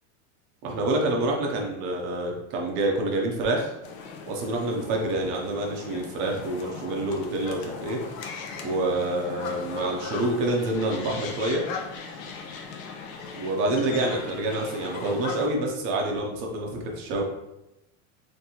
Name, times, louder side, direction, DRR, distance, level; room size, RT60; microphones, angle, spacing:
voice 1, 0.6-3.7 4.3-8.0 8.6-11.6 13.4-17.2, right 2 dB, 30° right, 0 dB, 0.4 m, -27 dB
sound 1, 3.8-15.5, left 5 dB, 75° left, 0.7 m, -38 dB
3.8 x 2.6 x 2.8 m, 0.89 s
supercardioid pair, 175°, 41 cm